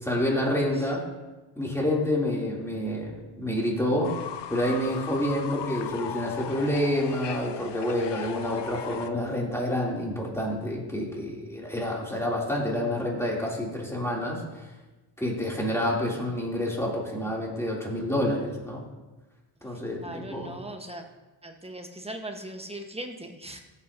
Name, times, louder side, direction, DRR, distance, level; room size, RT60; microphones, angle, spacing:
voice 1, 0.0-1.0 1.6-4.2 4.5-14.4 15.2-18.8 19.6-20.5, left 1 dB, 5° left, -3 dB, 3.1 m, -28 dB
Fowl / Bird, 4.0-9.1, left 9 dB, 60° left, 0.8 m, -38 dB
voice 2, 19.7-21.0 21.4-23.6, right 1 dB, 10° right, 4 dB, 1.3 m, -39 dB
14.5 x 8.1 x 2.8 m, 1.1 s
cardioid pair, 80°, 48 cm